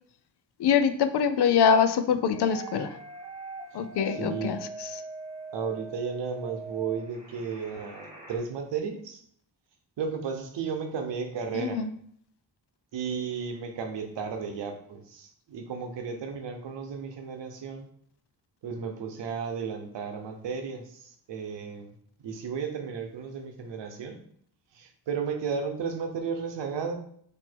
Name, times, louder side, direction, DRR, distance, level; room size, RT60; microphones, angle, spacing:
voice 1, 0.6-2.9 3.7-4.6 11.5-11.9, left 7 dB, 65° left, 9 dB, 0.6 m, -24 dB
sound 1, 2.3-8.4, right 3 dB, 15° right, 1.8 m, -42 dB
voice 2, 4.1-4.6 5.5-9.2 10.0-11.8 12.9-17.9 18.6-21.9 22.2-24.2 24.7-26.9, right 6 dB, 80° right, 5 dB, 0.9 m, -34 dB
4.3 x 2.8 x 4.4 m, 0.63 s
wide cardioid pair, 140°, 42 cm